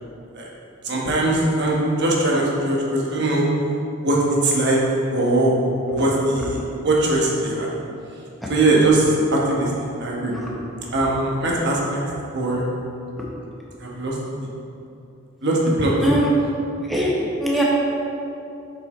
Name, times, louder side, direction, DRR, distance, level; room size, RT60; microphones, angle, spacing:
voice 1, 0.8-3.5 4.0-4.8 5.1-5.5 5.9-7.7 8.5-10.3 10.9-12.0 12.3-12.6 13.8-14.2 15.4-15.9, right 2 dB, 50° right, -3 dB, 1.2 m, -20 dB
voice 2, 10.3-10.5 16.0-16.3 16.9-17.1 17.4-17.6, equal, ahead, -5 dB, 1.0 m, -21 dB
7.7 x 5.5 x 3.1 m, 2.8 s
head